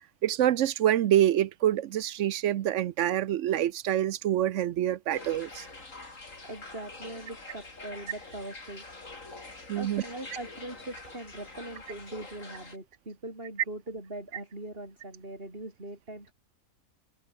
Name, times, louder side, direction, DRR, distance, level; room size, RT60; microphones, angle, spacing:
voice 1, 0.2-5.7 9.7-10.0, right 11 dB, 65° right, 0.9 m, -26 dB
sound 1, 5.1-12.8, left 3 dB, 65° left, 4.3 m, -46 dB
voice 2, 6.4-8.9 9.8-16.3, right 1 dB, 40° right, 6.9 m, -41 dB
omnidirectional pair, 1.5 m